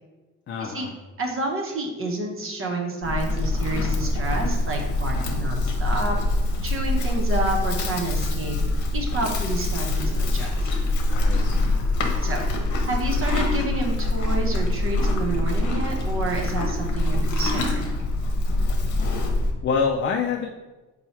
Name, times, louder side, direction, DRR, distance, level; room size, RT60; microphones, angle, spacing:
voice 1, 0.5-0.9 11.1-11.8 19.6-20.5, left 5 dB, 40° left, 2 dB, 0.4 m, -26 dB
voice 2, 1.2-6.2 6.6-8.6 8.9-10.7 12.2-17.9, right 2 dB, 45° right, 1 dB, 0.9 m, -29 dB
Livestock farm animals working animals, 3.0-19.5, left 2 dB, 75° left, 0.8 m, -24 dB
4.5 x 2.3 x 4.2 m, 1.2 s
cardioid pair, 90°, 30 cm